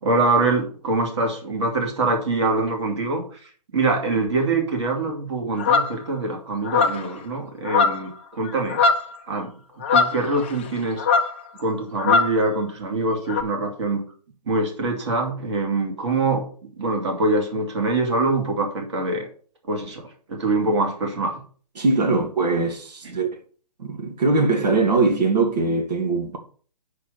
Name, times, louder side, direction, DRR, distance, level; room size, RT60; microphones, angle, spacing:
voice 1, 0.0-3.2 3.7-8.8 9.3-9.5 9.9-11.0 11.6-14.0 14.5-16.4 16.8-19.3 19.7-21.3 22.1-22.2, right 3 dB, 45° right, 2.6 m, -24 dB
sound 1, 5.6-6.0 6.6-7.1 7.6-8.2 8.5-9.1 9.8-10.7 11.0-11.4 12.0-12.4 13.3-13.4, left 5 dB, 15° left, 0.5 m, -20 dB
voice 2, 21.8-23.3 23.8-26.4, right 3 dB, 80° right, 2.7 m, -21 dB
6.7 x 5.1 x 6.8 m
hypercardioid pair, 175°, 21 cm